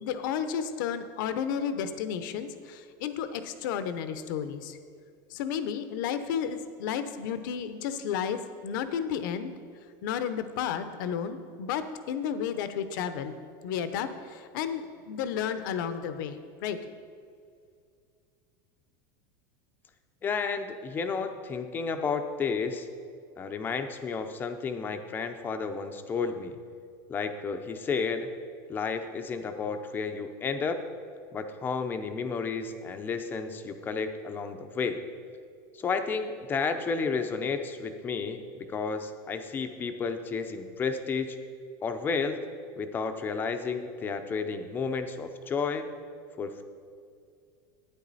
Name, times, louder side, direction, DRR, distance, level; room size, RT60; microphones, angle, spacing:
voice 1, 0.0-4.8 5.3-9.5 10.0-13.4 13.6-16.8, left 8 dB, 65° left, 10 dB, 0.7 m, -32 dB
voice 2, 20.2-22.9 23.4-26.6 27.1-28.3 28.7-30.8 31.3-35.0 35.8-38.4 38.7-41.4 41.8-42.4 42.8-45.9 46.4-46.6, left 5 dB, 15° left, 7 dB, 0.6 m, -32 dB
11.5 x 9.7 x 4.1 m, 2.2 s
supercardioid pair, 165°, 11 cm